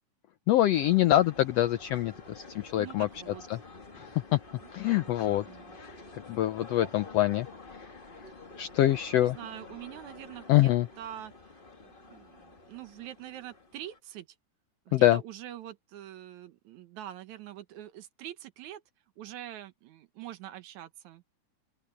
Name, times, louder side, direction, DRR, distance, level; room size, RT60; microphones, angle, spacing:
voice 1, 0.5-3.1 3.5-3.6 3.9-4.4 4.7-5.4 6.1-7.5 8.6-9.4 10.5-10.9 14.9-15.2, left 14 dB, 80° left, 1.4 m, -25 dB
sound 1, 0.7-14.0, left 3 dB, 25° left, 1.4 m, -49 dB
voice 2, 2.7-3.4 4.6-5.7 9.1-11.3 11.8-14.3 14.9-18.8 19.2-21.2, right 12 dB, 70° right, 2.3 m, -45 dB
open air
omnidirectional pair, 3.6 m